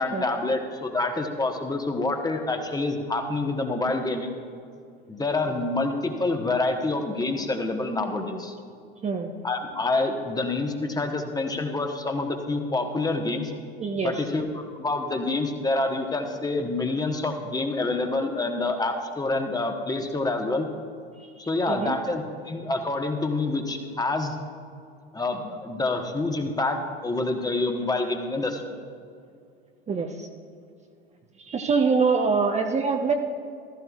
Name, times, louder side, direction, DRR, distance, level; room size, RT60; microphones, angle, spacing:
voice 1, 0.0-4.3 5.1-8.5 9.4-13.5 14.0-14.5 14.8-20.7 21.4-24.3 25.1-28.6, left 2 dB, 15° left, 4 dB, 1.2 m, -27 dB
voice 2, 13.8-14.2 21.2-21.3 21.7-22.0 29.9-30.1 31.4-33.1, right 5 dB, 25° right, 3 dB, 0.8 m, -24 dB
15.0 x 13.5 x 2.4 m, 2.4 s
hypercardioid pair, 80°, 29 cm